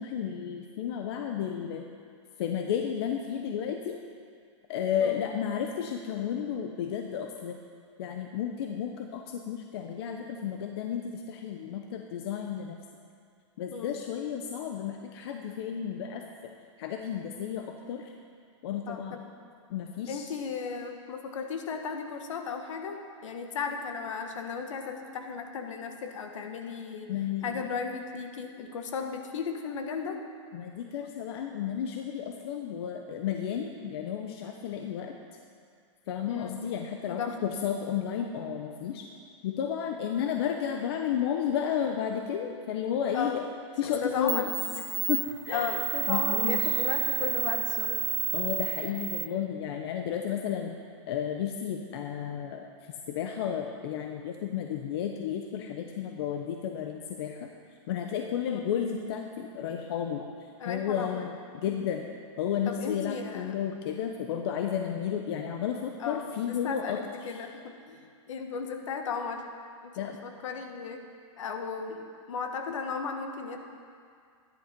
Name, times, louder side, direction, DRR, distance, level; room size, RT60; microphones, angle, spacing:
voice 1, 0.0-1.9 2.4-4.0 4.7-7.6 8.0-12.8 13.6-16.2 16.8-18.1 18.6-19.3 19.7-20.3 27.1-27.6 30.5-35.1 36.1-39.0 39.4-43.4 43.8-44.5 45.1-45.8 46.1-46.7 48.3-50.7 51.1-52.6 53.1-57.5 57.9-60.2 60.7-62.1 62.4-67.4 70.0-70.2, left 8 dB, 50° left, 3 dB, 0.9 m, -32 dB
voice 2, 13.7-14.0 18.9-19.2 20.1-27.1 27.4-30.2 36.3-36.6 37.1-37.3 43.1-43.4 43.8-44.9 45.5-48.1 58.5-58.7 60.6-61.3 61.7-61.9 62.6-63.5 66.0-68.0 68.3-69.4 69.8-71.0 71.4-73.6, left 5 dB, 75° left, 4 dB, 1.6 m, -35 dB
sound 1, 43.8-43.9 44.3-49.3, right 8 dB, 80° right, 0.7 m, -30 dB
13.5 x 11.0 x 5.3 m, 2.2 s
supercardioid pair, 160°, 16 cm